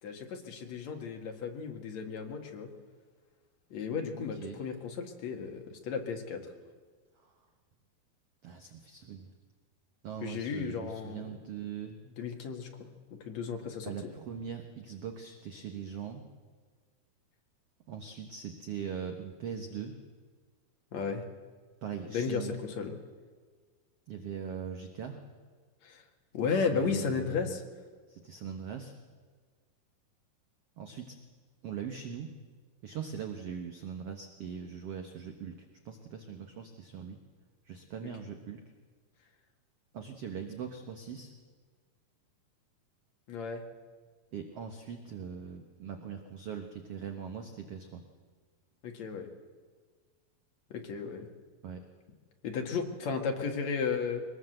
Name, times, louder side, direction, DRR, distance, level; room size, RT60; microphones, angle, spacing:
voice 1, 0.0-2.7 3.7-6.4 10.2-11.4 12.2-12.9 13.3-13.9 20.9-21.2 22.1-23.0 25.8-26.0 26.3-27.6 38.0-38.1 43.3-43.6 48.8-49.3 50.7-51.3 52.4-54.2, left 5 dB, 50° left, 3 dB, 2.6 m, -34 dB
voice 2, 4.2-4.6 7.2-7.3 8.4-9.3 10.0-12.0 13.8-16.2 17.9-20.0 21.8-22.6 24.1-25.2 26.7-27.6 28.1-28.9 30.8-31.2 31.6-32.3 32.8-37.2 37.6-38.6 39.9-41.3 44.3-48.0 51.6-51.8, right 7 dB, 65° right, 5 dB, 1.5 m, -41 dB
23.0 x 19.0 x 7.9 m, 1.5 s
omnidirectional pair, 4.6 m